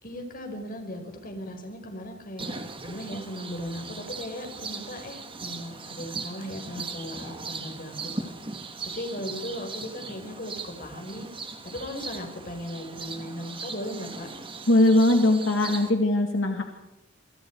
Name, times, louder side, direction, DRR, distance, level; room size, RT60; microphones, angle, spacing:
voice 1, 0.0-8.3 8.9-11.3 11.6-14.3, left 1 dB, 45° left, 4 dB, 5.2 m, -37 dB
sound 1, 2.4-15.9, right 4 dB, 25° right, 2.3 m, -39 dB
voice 2, 14.7-16.6, left 1 dB, 80° left, 4 dB, 2.5 m, -20 dB
28.5 x 25.0 x 4.8 m, 0.92 s
head